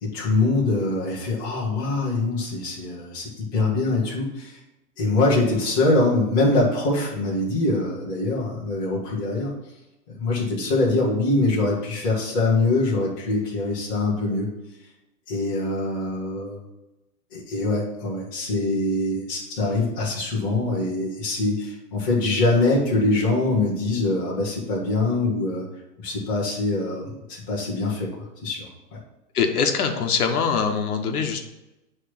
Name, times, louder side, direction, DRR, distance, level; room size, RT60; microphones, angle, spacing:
voice 1, 0.0-4.6 5.0-9.5 10.2-14.5 15.3-16.6 17.3-25.7 26.0-29.0, left 2 dB, 15° left, -7 dB, 0.9 m, -23 dB
voice 2, 29.3-31.4, left 6 dB, 65° left, 4 dB, 1.1 m, -23 dB
7.6 x 3.2 x 6.1 m, 0.97 s
hypercardioid pair, 180°, 48 cm